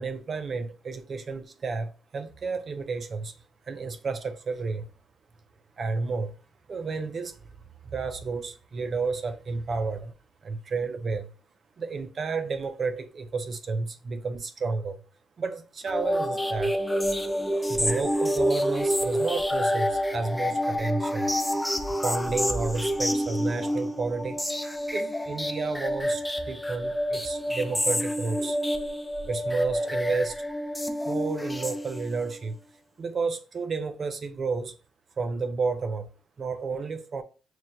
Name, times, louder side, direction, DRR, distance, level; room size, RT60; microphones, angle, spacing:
voice 1, 0.0-3.3 3.7-4.9 5.8-6.3 6.7-7.4 7.8-10.1 10.4-11.3 11.8-15.0 15.4-16.8 17.7-21.3 22.0-24.5 24.9-28.6 29.3-30.4 31.0-32.6 33.0-34.7 35.2-36.1 36.4-37.2, right 4 dB, 45° right, 0.5 m, -31 dB
sound 1, 15.9-32.3, equal, 5° left, 0.4 m, -28 dB
5.9 x 2.1 x 2.6 m
cardioid pair, 90°, 0 cm